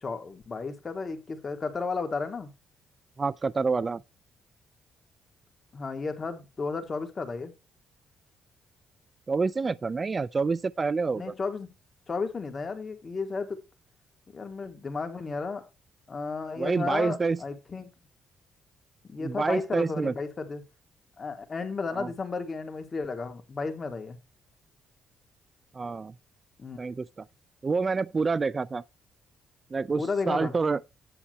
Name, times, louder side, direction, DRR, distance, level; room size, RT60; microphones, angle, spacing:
voice 1, 0.0-2.5 5.7-7.5 11.1-11.7 12.1-13.6 14.3-15.6 16.1-17.9 19.1-20.6 21.2-24.2 26.6-26.8 30.0-30.5, left 4 dB, 35° left, 2.5 m, -33 dB
voice 2, 3.2-4.0 9.3-11.2 16.6-17.4 19.2-20.1 22.0-22.1 25.7-26.1 26.8-27.2 27.6-28.8 29.7-30.8, right 4 dB, 30° right, 0.5 m, -27 dB
10.0 x 8.6 x 3.3 m
cardioid pair, 90°, 0 cm